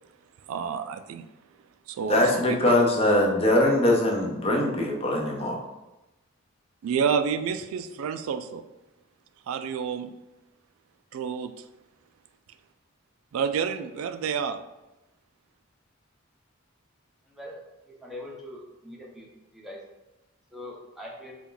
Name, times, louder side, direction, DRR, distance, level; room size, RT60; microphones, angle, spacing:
voice 1, 0.5-1.3 1.9-2.6 6.8-8.7 9.5-10.1 11.1-11.6 13.3-14.6, right 6 dB, 90° right, 11 dB, 0.3 m, -29 dB
voice 2, 2.1-5.6, left 1 dB, 30° left, 0 dB, 0.7 m, -22 dB
voice 3, 17.9-19.3 19.5-19.8 20.5-21.3, left 1 dB, ahead, -4 dB, 0.7 m, -42 dB
4.3 x 2.4 x 3.8 m, 1.0 s
head